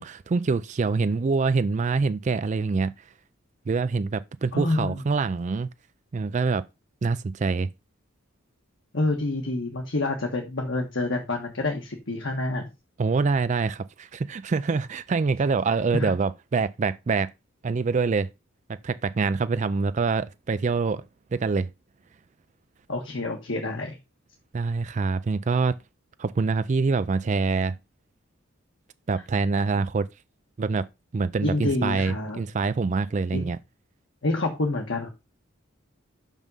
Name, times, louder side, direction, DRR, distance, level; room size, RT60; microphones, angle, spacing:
voice 1, 0.0-2.9 3.7-5.7 6.1-6.6 7.0-7.7 13.0-17.3 17.6-18.3 18.8-21.0 21.3-21.7 24.5-25.8 26.2-27.8 29.1-30.1 30.6-30.9 31.1-33.6, right 4 dB, 35° right, 0.3 m, -25 dB
voice 2, 4.5-5.0 8.9-12.7 15.9-16.1 22.9-24.0 31.4-32.4 33.3-33.4 34.2-35.1, left 2 dB, 65° left, 1.5 m, -27 dB
6.1 x 5.4 x 5.4 m
head